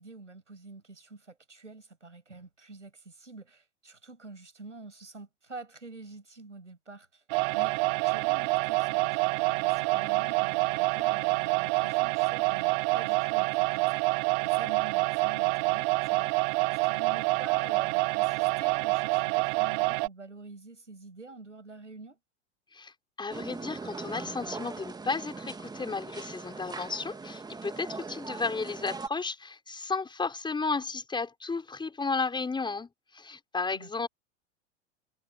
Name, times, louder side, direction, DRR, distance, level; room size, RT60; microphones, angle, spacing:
voice 1, 0.0-7.2 7.5-16.3 16.6-22.2 33.7-34.1, right 3 dB, 90° right, 8.0 m, -47 dB
sound 1, 7.3-20.1, right 34 dB, 45° right, 1.3 m, -27 dB
voice 2, 22.7-34.1, left 4 dB, 15° left, 5.9 m, -33 dB
sound 2, 23.3-29.1, right 4 dB, 10° right, 2.2 m, -40 dB
figure-of-eight pair, 90°, 35 cm